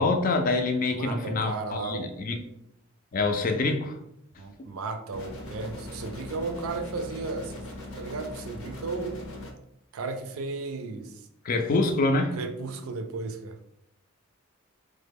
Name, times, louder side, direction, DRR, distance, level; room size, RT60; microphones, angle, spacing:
voice 1, 0.0-2.4 3.1-4.0 11.4-12.4, left 3 dB, 40° left, 0.4 m, -25 dB
voice 2, 0.9-2.2 4.4-7.6 7.9-9.2 9.9-11.2 12.4-13.6, right 3 dB, 85° right, 0.4 m, -34 dB
sound 1, 5.1-9.5, left 1 dB, 80° left, 0.7 m, -40 dB
3.1 x 2.1 x 3.4 m
head